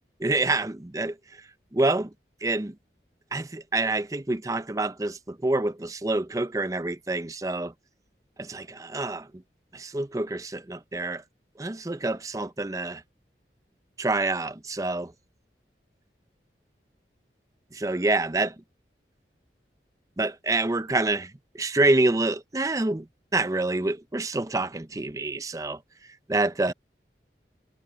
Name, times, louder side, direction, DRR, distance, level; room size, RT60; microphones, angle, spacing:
voice 1, 0.2-1.1 1.7-2.1 2.4-2.7 3.3-7.7 8.4-9.3 9.7-11.2 11.6-13.0 14.0-15.1 17.7-18.5 20.2-23.1 23.3-25.8 26.3-26.7, right 2 dB, 20° right, 0.6 m, -27 dB
head